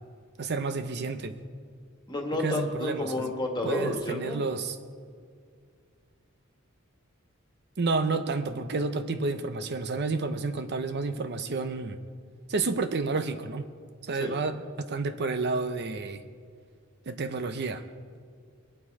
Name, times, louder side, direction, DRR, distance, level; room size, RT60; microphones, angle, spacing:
voice 1, 0.4-1.4 2.4-3.3 3.6-4.8 7.8-12.0 12.5-13.7 14.0-16.2 17.1-17.8, right 3 dB, 55° right, 9 dB, 0.7 m, -30 dB
voice 2, 2.1-4.4 14.2-14.3, left 2 dB, 20° left, 2 dB, 1.8 m, -30 dB
22.5 x 8.8 x 4.8 m, 2.1 s
head